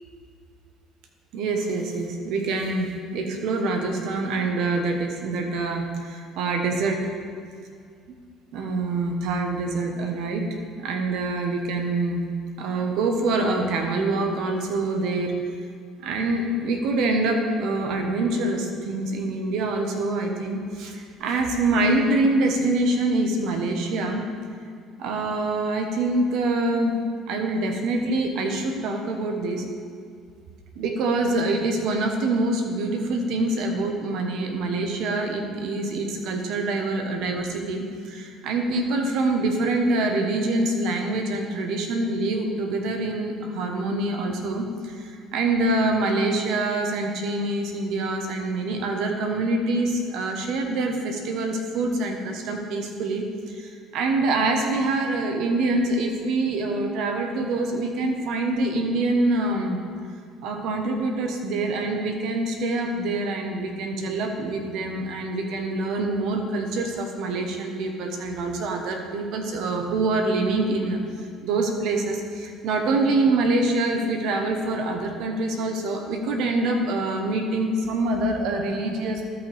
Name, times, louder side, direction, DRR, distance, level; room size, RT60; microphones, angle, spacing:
voice 1, 1.3-7.1 8.1-8.2 8.5-10.5 10.8-12.2 12.6-15.4 16.0-24.3 25.0-27.0 27.3-29.6 30.7-59.8 60.4-71.0 71.4-79.2, right 2 dB, 75° right, 3 dB, 1.2 m, -25 dB
13.0 x 5.8 x 3.5 m, 2.2 s
supercardioid pair, 90°, 0 cm